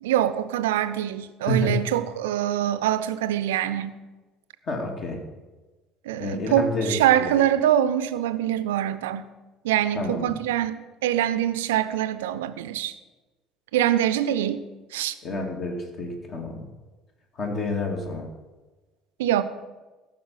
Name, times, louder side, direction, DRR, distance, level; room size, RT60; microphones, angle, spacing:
voice 1, 0.0-4.0 6.1-9.3 9.6-12.9 13.7-14.6 14.9-15.1 19.2-19.4, right 11 dB, 70° right, 13 dB, 0.5 m, -24 dB
voice 2, 1.5-1.8 4.7-5.2 6.2-7.4 10.0-10.4 15.2-16.6 17.4-18.3, left 2 dB, 45° left, 3 dB, 2.1 m, -29 dB
14.0 x 5.9 x 5.5 m, 1.2 s
figure-of-eight pair, 60°, 0 cm